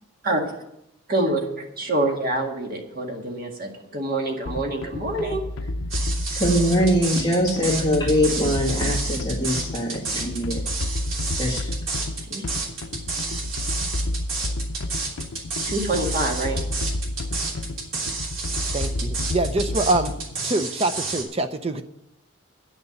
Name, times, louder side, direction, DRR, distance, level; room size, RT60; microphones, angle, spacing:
voice 1, 0.2-0.6 1.1-5.4 12.3-12.4 15.6-16.6, right 2 dB, 45° right, 1 dB, 1.9 m, -26 dB
sound 1, 4.5-20.4, left 1 dB, 75° left, 0.6 m, -30 dB
sound 2, 5.9-21.2, right 4 dB, 75° right, 3.2 m, -30 dB
voice 2, 6.3-10.6 11.4-11.7, equal, 20° left, -3 dB, 2.0 m, -22 dB
voice 3, 18.7-20.1 20.4-21.8, right 2 dB, 30° right, 9 dB, 0.5 m, -24 dB
9.7 x 6.8 x 9.0 m, 0.82 s
head